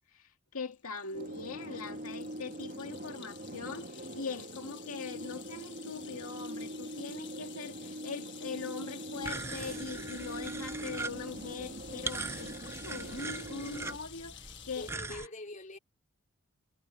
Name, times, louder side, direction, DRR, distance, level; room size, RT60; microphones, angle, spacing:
voice 1, 0.1-12.6 12.8-15.3, left 4 dB, 80° left, 2.2 m, -42 dB
sound 1, 0.7-14.9, left 11 dB, 55° left, 1.5 m, -51 dB
sound 2, 1.1-14.0, right 1 dB, 45° right, 2.5 m, -43 dB
voice 2, 1.5-1.9 14.8-15.8, left 2 dB, 35° left, 3.5 m, -45 dB
sound 3, 9.2-15.3, right 3 dB, 10° right, 0.5 m, -41 dB
head